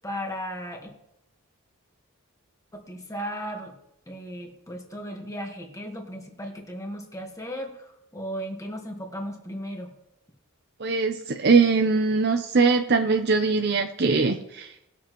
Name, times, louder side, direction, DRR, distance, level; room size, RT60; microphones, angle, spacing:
voice 1, 0.0-0.9 2.7-3.7 4.1-9.9, equal, 15° left, 2 dB, 1.4 m, -36 dB
voice 2, 10.8-14.7, right 4 dB, 50° right, 5 dB, 0.6 m, -21 dB
19.5 x 6.9 x 3.1 m, 0.82 s
head